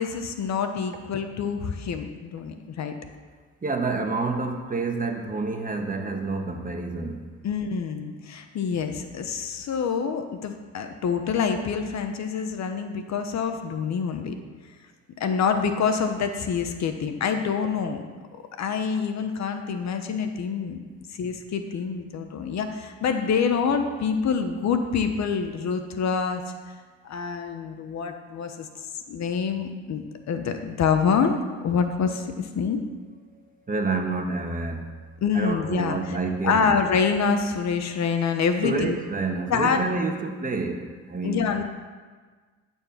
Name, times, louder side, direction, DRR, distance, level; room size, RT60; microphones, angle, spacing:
voice 1, 0.0-2.9 7.4-14.3 15.2-18.0 18.6-20.8 21.2-26.4 27.0-28.7 29.1-31.3 31.6-32.8 35.2-36.2 36.4-39.0 39.5-39.8 41.2-41.6, left 6 dB, 60° left, 7 dB, 1.1 m, -26 dB
voice 2, 3.6-7.2 33.3-34.9 35.3-36.8 38.6-41.6, right 3 dB, 25° right, 3 dB, 1.5 m, -28 dB
12.5 x 4.6 x 7.3 m, 1.5 s
supercardioid pair, 80°, 31 cm